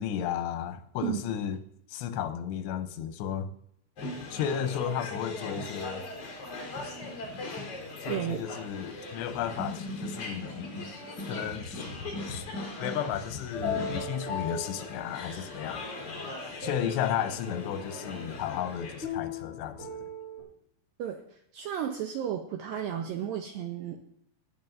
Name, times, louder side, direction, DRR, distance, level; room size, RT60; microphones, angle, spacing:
voice 1, 0.0-1.6 1.9-3.5 4.3-6.1 8.0-10.9 11.3-11.9 12.3-12.5 12.8-15.8 16.6-19.9, left 9 dB, 85° left, 2.9 m, -33 dB
sound 1, 4.0-19.0, left 2 dB, 40° left, 4.1 m, -39 dB
voice 2, 8.1-8.5 21.0-24.0, right 9 dB, 85° right, 2.1 m, -33 dB
sound 2, 13.5-15.7 16.2-17.3 19.0-20.4, left 4 dB, 15° right, 5.7 m, -37 dB
18.5 x 9.0 x 2.6 m
omnidirectional pair, 4.8 m